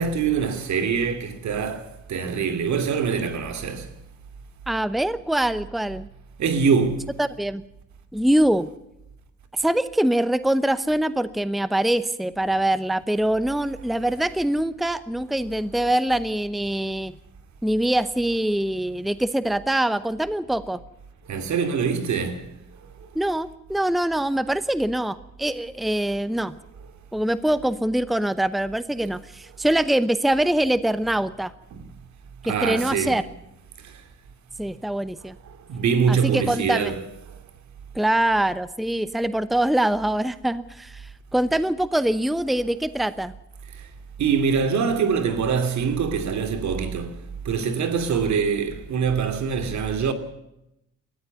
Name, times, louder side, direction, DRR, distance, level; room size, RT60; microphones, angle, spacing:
voice 1, 0.0-3.9 6.4-7.1 13.6-13.7 15.8-15.9 21.3-22.5 31.7-31.8 32.4-33.3 33.8-33.9 35.7-37.1 44.2-47.2 47.4-50.1, right 6 dB, 70° right, 2.8 m, -24 dB
voice 2, 4.7-6.1 7.2-7.6 8.1-8.7 9.5-17.2 17.6-20.8 23.1-26.5 27.1-31.5 32.5-33.2 34.6-35.3 36.1-36.9 37.9-43.3, right 1 dB, ahead, 0.8 m, -24 dB
20.0 x 14.5 x 9.5 m
cardioid pair, 90°, 30 cm